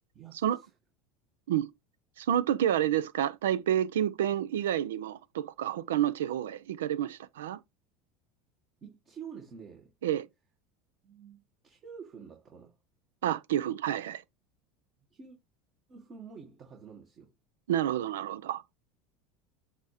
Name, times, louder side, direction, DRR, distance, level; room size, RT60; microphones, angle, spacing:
voice 1, 0.1-0.7 8.8-9.9 11.0-11.4 11.6-12.8 15.1-15.4 15.9-17.3, right 6 dB, 40° right, 1.8 m, -48 dB
voice 2, 2.2-7.6 10.0-10.3 13.2-14.2 17.7-18.6, right 11 dB, 90° right, 0.5 m, -29 dB
8.1 x 2.8 x 4.9 m
supercardioid pair, 100°, 0 cm